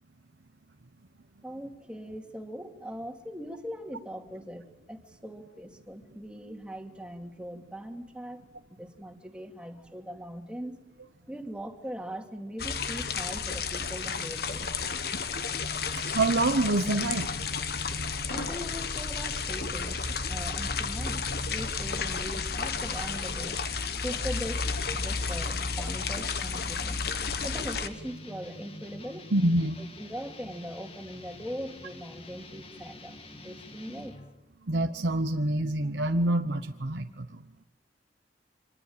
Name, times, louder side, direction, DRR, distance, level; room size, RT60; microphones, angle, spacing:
voice 1, 1.4-8.4 8.7-10.8 11.3-14.7 18.3-20.0 20.3-23.6 24.0-27.1 27.4-29.3 29.8-33.2 33.4-34.2, equal, 5° right, 4 dB, 2.6 m, -40 dB
sound 1, 12.6-27.9, left 5 dB, 60° left, 1.5 m, -32 dB
sound 2, 14.7-19.4, left 1 dB, 85° left, 3.4 m, -44 dB
voice 2, 16.0-17.5 29.3-29.8 34.6-37.4, right 2 dB, 85° right, 5 dB, 1.1 m, -27 dB
sound 3, 21.8-34.3, left 2 dB, 35° left, 2.3 m, -47 dB
26.0 x 20.5 x 8.8 m, 0.92 s
head